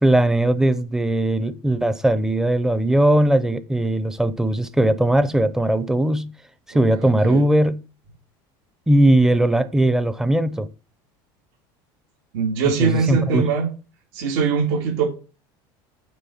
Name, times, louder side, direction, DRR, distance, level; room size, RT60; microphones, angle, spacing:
voice 1, 0.0-6.3 6.7-7.8 8.9-10.7 12.8-13.5, right 1 dB, 5° right, 0.6 m, -19 dB
voice 2, 6.7-7.5 12.3-13.7 14.1-15.1, right 5 dB, 85° right, 2.7 m, -22 dB
9.3 x 3.8 x 7.0 m
cardioid pair, 145°, 11 cm